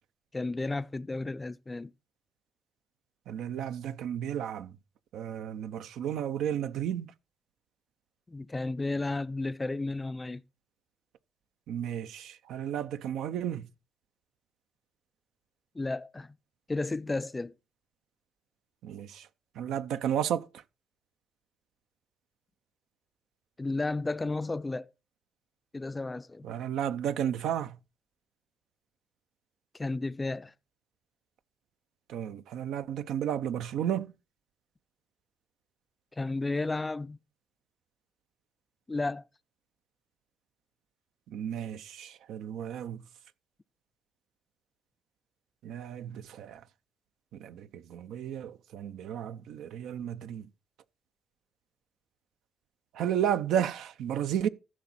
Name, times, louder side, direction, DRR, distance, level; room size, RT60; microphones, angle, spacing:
voice 1, 0.3-1.9 8.3-10.4 15.7-16.4 16.7-17.5 23.6-24.9 25.7-26.5 29.7-30.5 36.1-37.2 38.9-39.3, left 2 dB, 20° left, 0.4 m, -33 dB
voice 2, 3.3-4.7 5.1-7.1 11.7-13.6 18.8-19.3 19.6-20.5 26.4-27.8 32.1-34.1 41.3-43.0 45.6-46.6 47.3-50.5 52.9-54.5, right 9 dB, 85° right, 0.6 m, -33 dB
14.5 x 6.1 x 4.2 m
cardioid pair, 90°, 0 cm